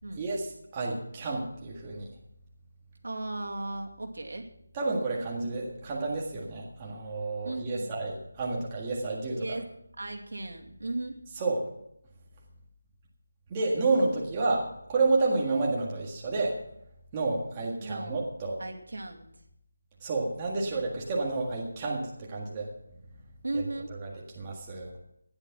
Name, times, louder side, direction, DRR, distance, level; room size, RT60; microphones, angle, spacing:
voice 1, 0.2-0.5 0.7-2.1 4.7-9.4 11.4-11.7 13.5-16.6 17.1-18.6 20.0-22.7 23.5-23.6 24.0-24.1 24.4-24.9, right 3 dB, 15° right, -3 dB, 1.8 m, -30 dB
voice 2, 3.0-4.5 7.4-8.0 9.4-9.7 10.0-11.2 17.8-18.2 18.6-19.3 23.4-23.9, right 2 dB, 75° right, 2 dB, 2.6 m, -36 dB
15.0 x 10.5 x 6.0 m, 0.78 s
figure-of-eight pair, 175°, 0 cm